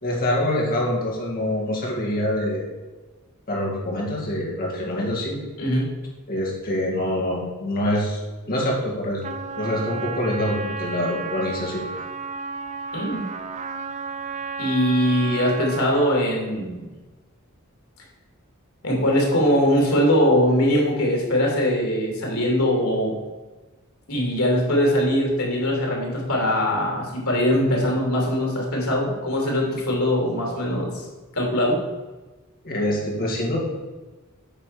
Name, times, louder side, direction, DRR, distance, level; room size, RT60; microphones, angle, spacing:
voice 1, 0.0-2.7 3.5-5.4 6.3-8.2 8.5-9.3 9.6-11.8 32.6-33.6, left 1 dB, 45° left, -3 dB, 2.4 m, -25 dB
voice 2, 5.6-5.9 12.9-13.3 14.6-16.8 18.8-23.1 24.1-30.9 31.3-31.8, equal, 90° left, -1 dB, 3.0 m, -21 dB
Trumpet, 9.2-16.2, right 5 dB, 35° right, 0.5 m, -33 dB
8.9 x 4.3 x 6.7 m, 1.2 s
head